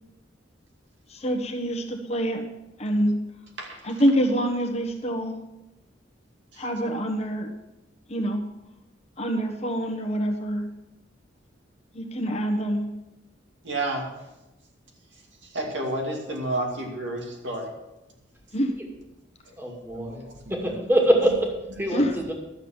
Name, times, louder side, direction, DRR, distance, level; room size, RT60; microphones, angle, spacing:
voice 1, 1.1-2.4 2.8-3.1 3.8-5.4 6.6-7.5 8.1-8.4 9.2-10.6 11.9-12.9 18.5-18.7 21.9-22.1, equal, 35° left, 3 dB, 1.3 m, -26 dB
voice 2, 13.6-14.1 15.5-17.7 19.9-20.2 20.6-20.8, right 1 dB, 70° right, 1 dB, 2.5 m, -30 dB
voice 3, 19.6-20.2 20.5-22.3, right 1 dB, 10° right, 0 dB, 2.2 m, -24 dB
12.0 x 7.2 x 7.2 m, 0.96 s
head